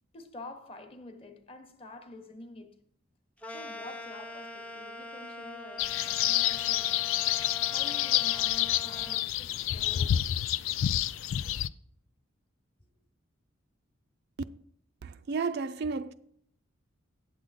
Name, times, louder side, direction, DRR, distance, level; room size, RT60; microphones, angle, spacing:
voice 1, 0.1-2.8 3.5-7.0 7.7-10.3, left 2 dB, 30° left, 0.9 m, -48 dB
sound 1, 3.4-9.2, left 2 dB, 5° left, 0.4 m, -43 dB
sound 2, 5.8-11.7, left 12 dB, 75° left, 0.3 m, -28 dB
voice 2, 15.0-16.1, right 4 dB, 55° right, 0.4 m, -32 dB
8.5 x 7.5 x 4.1 m
head